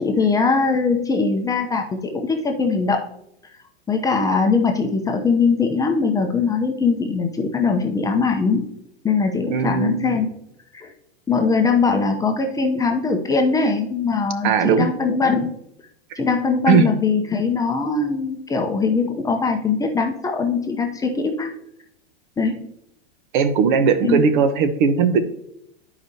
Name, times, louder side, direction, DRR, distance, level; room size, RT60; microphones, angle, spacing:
voice 1, 0.0-3.0 3.9-8.7 9.0-10.3 10.7-10.9 11.3-15.6 16.2-21.5 22.4-22.7 24.0-24.3, left 4 dB, 10° left, 3 dB, 0.6 m, -21 dB
voice 2, 9.5-10.1 14.4-14.9 16.1-16.2 16.7-16.9 23.3-25.2, right 6 dB, 55° right, 11 dB, 0.9 m, -18 dB
12.0 x 4.9 x 2.7 m, 0.76 s
hypercardioid pair, 125°, 30 cm